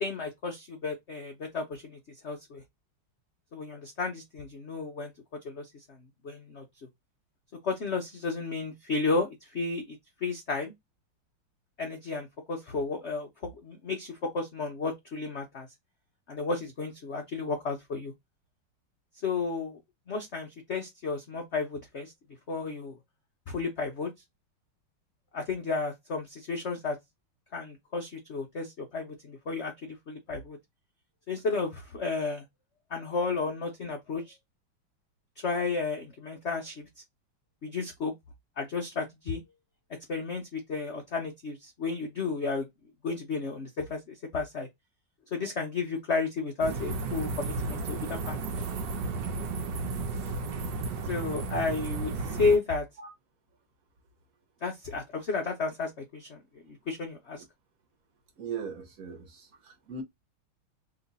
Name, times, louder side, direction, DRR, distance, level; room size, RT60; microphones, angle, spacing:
voice 1, 0.0-2.6 3.5-5.1 5.4-6.6 7.6-10.7 11.8-15.7 16.3-18.1 19.2-19.8 20.1-22.1 22.5-23.0 23.5-24.1 25.3-27.0 27.5-30.6 31.3-32.4 32.9-34.4 35.4-36.9 37.6-38.1 38.6-39.4 40.1-42.7 43.0-44.7 45.3-48.4 51.0-52.9 54.6-57.4, left 4 dB, 90° left, 0.6 m, -32 dB
sound 1, 46.6-52.6, right 3 dB, 65° right, 1.3 m, -33 dB
voice 2, 58.4-60.0, right 5 dB, 50° right, 1.3 m, -39 dB
3.2 x 2.9 x 4.0 m
omnidirectional pair, 2.3 m